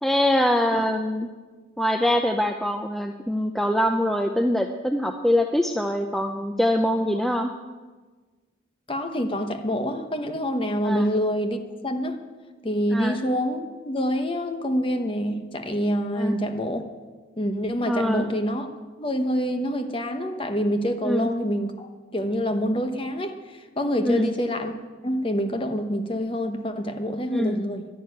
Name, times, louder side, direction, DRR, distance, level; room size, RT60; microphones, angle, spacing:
voice 1, 0.0-1.3 1.8-7.5 10.8-11.1 12.9-13.2 16.2-16.4 17.9-18.2 21.0-21.3 24.0-24.3 27.3-27.6, left 1 dB, ahead, 5 dB, 0.5 m, -23 dB
voice 2, 8.9-12.2 12.6-16.8 17.4-18.7 19.0-24.7 25.0-27.9, equal, 25° left, 6 dB, 1.0 m, -26 dB
11.0 x 11.0 x 9.2 m, 1.4 s
head